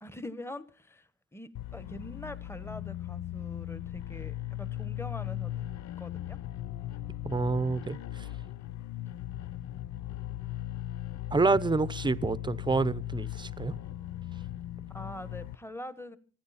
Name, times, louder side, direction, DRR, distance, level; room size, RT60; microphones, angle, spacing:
voice 1, 0.0-5.7 6.0-6.4 14.9-16.2, left 1 dB, 10° left, 1.3 m, -43 dB
sound 1, 1.5-15.6, left 13 dB, 65° left, 0.7 m, -38 dB
voice 2, 7.2-8.3 11.3-13.8, right 3 dB, 15° right, 0.8 m, -28 dB
27.0 x 9.6 x 4.3 m
cardioid pair, 90°, 30 cm